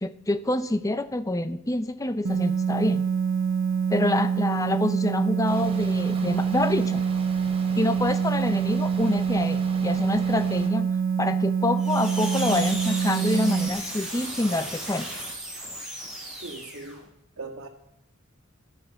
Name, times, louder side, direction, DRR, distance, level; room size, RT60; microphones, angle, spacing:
voice 1, 0.0-3.0 3.9-7.0 7.8-10.9 11.2-15.1, left 2 dB, 15° left, 11 dB, 0.7 m, -27 dB
sound 1, 2.2-13.7, right 6 dB, 70° right, 1.1 m, -25 dB
sound 2, 5.4-10.7, right 2 dB, 30° right, 3.1 m, -42 dB
sound 3, 11.8-17.0, right 1 dB, 5° right, 7.3 m, -35 dB
voice 2, 16.4-17.1 17.4-17.7, right 3 dB, 85° right, -3 dB, 1.9 m, -39 dB
16.5 x 13.0 x 5.7 m, 0.83 s
head